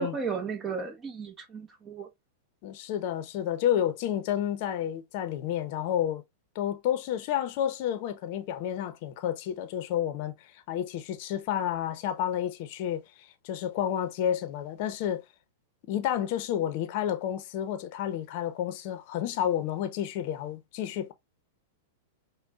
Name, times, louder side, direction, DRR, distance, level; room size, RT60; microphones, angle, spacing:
voice 1, 0.0-2.1, right 5 dB, 20° right, 0.8 m, -34 dB
voice 2, 2.6-6.2 6.5-15.2 15.8-21.1, left 10 dB, 55° left, 0.7 m, -30 dB
5.3 x 2.2 x 2.4 m
hypercardioid pair, 110°, 0 cm